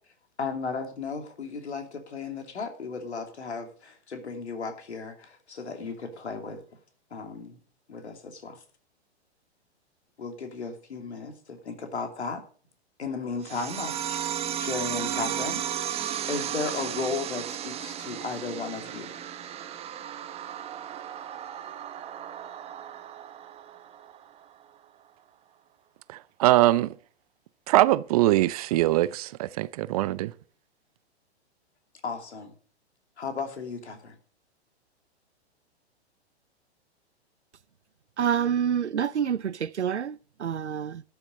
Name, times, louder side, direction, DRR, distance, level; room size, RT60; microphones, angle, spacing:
voice 1, 0.4-6.6 7.1-7.6 7.9-8.6 10.2-12.4 13.0-14.2 14.6-15.6 16.3-19.1 32.0-32.5 33.2-34.1, left 4 dB, 75° left, 3.0 m, -35 dB
sound 1, 13.4-24.4, right 10 dB, 20° right, 1.0 m, -35 dB
voice 2, 26.4-26.9 27.7-30.3, right 16 dB, 35° right, 0.5 m, -22 dB
voice 3, 38.2-41.0, right 8 dB, 90° right, 0.6 m, -27 dB
12.5 x 7.2 x 6.2 m
figure-of-eight pair, 115°, 33 cm